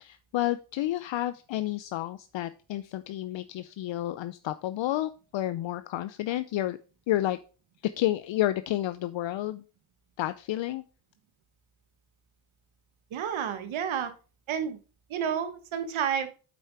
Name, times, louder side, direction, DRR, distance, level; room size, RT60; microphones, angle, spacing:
voice 1, 0.0-6.8 7.1-7.4 8.0-9.6 10.2-10.8, left 14 dB, 65° left, 12 dB, 0.6 m, -30 dB
voice 2, 13.1-14.1 14.5-14.8 15.1-16.3, right 8 dB, 70° right, 9 dB, 1.4 m, -30 dB
7.6 x 5.6 x 4.7 m, 0.35 s
supercardioid pair, 60°, 50 cm